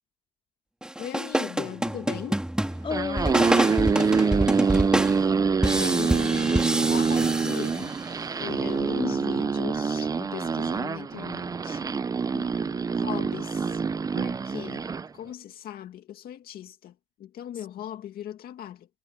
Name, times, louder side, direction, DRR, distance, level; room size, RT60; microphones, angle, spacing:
sound 1, 0.8-8.2, right 1 dB, 5° right, 2.4 m, -28 dB
voice 1, 1.0-2.4 5.6-7.9 8.4-11.9 12.9-13.8 14.2-14.9 15.1-16.9 17.2-18.9, left 11 dB, 65° left, 2.1 m, -38 dB
voice 2, 2.8-4.6 12.3-12.9 17.5-17.7, left 5 dB, 30° left, 3.7 m, -34 dB
sound 2, 2.8-15.1, right 5 dB, 20° right, 0.5 m, -26 dB
cardioid pair, 110°, 17 cm